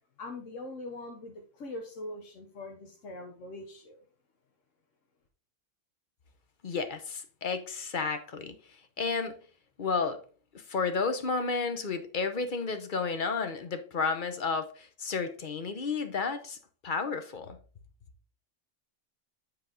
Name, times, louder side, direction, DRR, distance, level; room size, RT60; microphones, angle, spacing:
voice 1, 0.2-4.0, left 2 dB, 90° left, 1.3 m, -42 dB
voice 2, 6.6-8.5 9.0-9.4 9.8-10.2 10.7-16.6 16.8-17.6, left 4 dB, 45° left, 0.8 m, -32 dB
7.7 x 4.2 x 3.8 m
omnidirectional pair, 1.2 m